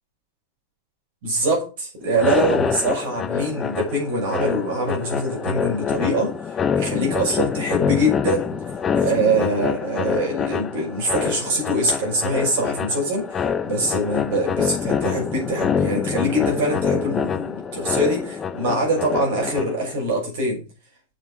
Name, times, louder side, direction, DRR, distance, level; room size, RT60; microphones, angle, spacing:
voice 1, 1.2-6.3 6.8-8.5 9.0-13.3 13.6-20.6, right 1 dB, 50° right, 0 dB, 6.4 m, -23 dB
sound 1, 2.1-20.0, left 6 dB, 20° left, 0.7 m, -26 dB
8.0 x 7.3 x 6.1 m, 0.33 s
figure-of-eight pair, 90°, 0 cm